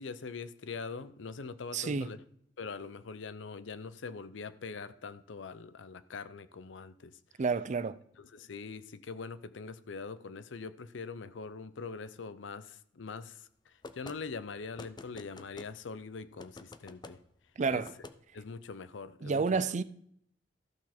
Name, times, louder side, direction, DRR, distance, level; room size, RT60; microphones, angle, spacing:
voice 1, 0.0-2.2 2.6-7.2 8.2-17.2 17.7-17.9 18.3-19.6, left 4 dB, 85° left, 0.6 m, -43 dB
voice 2, 1.7-2.1 7.4-8.0 17.6-17.9 19.2-19.8, right 4 dB, 40° right, 0.4 m, -30 dB
sound 1, 13.8-14.2 14.8-15.7 16.4-17.2 17.8-18.2, left 3 dB, 25° left, 0.5 m, -48 dB
13.5 x 6.1 x 4.3 m
head